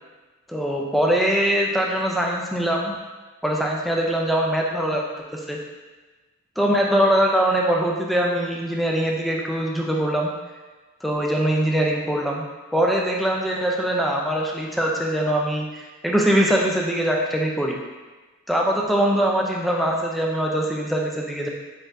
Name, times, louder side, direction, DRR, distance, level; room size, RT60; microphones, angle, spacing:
voice 1, 0.5-3.0 3.4-5.0 5.3-5.6 6.6-10.3 11.0-12.4 12.7-17.8 18.5-21.5, right 1 dB, ahead, -2 dB, 0.4 m, -22 dB
4.5 x 4.4 x 2.6 m, 1.3 s
head